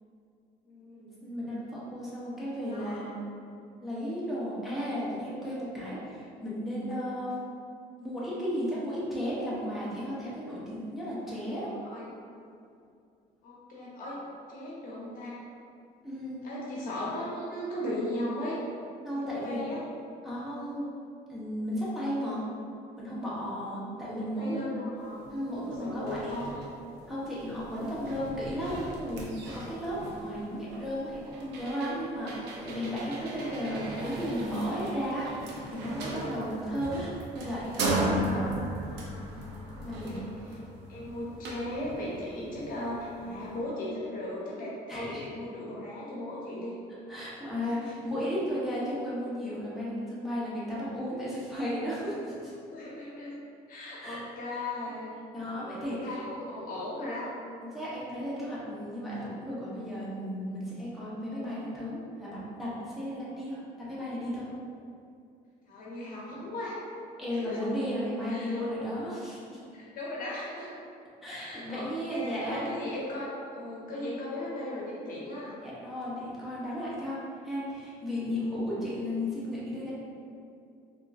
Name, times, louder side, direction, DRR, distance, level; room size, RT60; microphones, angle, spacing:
voice 1, 0.6-1.2 2.7-3.1 11.4-12.0 13.4-14.2 14.5-15.4 16.4-18.6 19.1-19.8 24.3-25.1 25.8-26.6 38.8-39.4 39.8-40.6 40.9-46.8 47.6-47.9 52.7-53.3 53.7-55.1 55.5-57.3 62.8-63.1 65.6-66.8 67.3-67.6 68.3-68.6 69.7-70.7 71.3-75.6 78.4-78.5, left 1 dB, 55° left, -6 dB, 0.9 m, -37 dB
voice 2, 1.2-3.2 3.8-7.3 8.0-11.7 16.0-16.4 19.0-19.7 20.2-20.9 21.3-22.4 23.0-24.8 25.3-26.4 27.1-35.3 35.7-38.5 39.8-40.3 44.9-45.3 47.1-52.5 54.0-54.2 54.9-55.0 55.3-56.1 57.0-57.2 57.7-64.5 67.2-69.6 71.2-72.6 75.6-77.2 77.4-79.9, equal, ahead, -10 dB, 0.9 m, -34 dB
sound 1, 25.2-25.3 25.7-43.6, right 1 dB, 85° right, 0.6 m, -37 dB
3.5 x 2.7 x 2.4 m, 2.5 s
cardioid pair, 110°, 17 cm